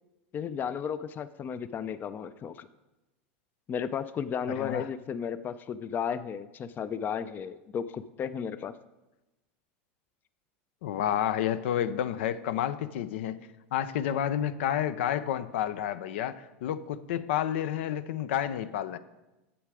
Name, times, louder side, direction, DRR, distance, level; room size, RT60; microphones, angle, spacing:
voice 1, 0.3-2.7 3.7-8.8, left 7 dB, 30° left, 13 dB, 0.4 m, -34 dB
voice 2, 4.5-4.9 10.8-13.4 13.7-19.0, left 10 dB, 75° left, 13 dB, 0.5 m, -30 dB
10.0 x 7.5 x 4.9 m, 1.0 s
supercardioid pair, 115°, 6 cm